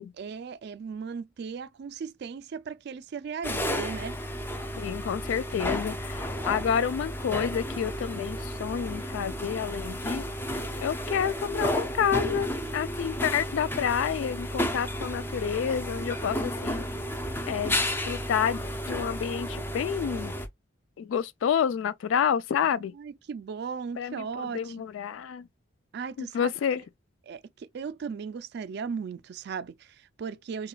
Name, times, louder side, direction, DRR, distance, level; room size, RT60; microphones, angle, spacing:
voice 1, 0.0-4.2 22.7-24.8 25.9-26.5 27.2-30.7, right 6 dB, 55° right, 0.3 m, -37 dB
sound 1, 3.4-20.5, equal, 10° left, 0.5 m, -32 dB
voice 2, 4.8-10.2 10.8-16.8 17.5-18.6 18.9-20.3 21.0-22.9 24.0-25.5 26.2-26.8, left 8 dB, 80° left, 0.3 m, -29 dB
4.9 x 2.3 x 2.2 m
head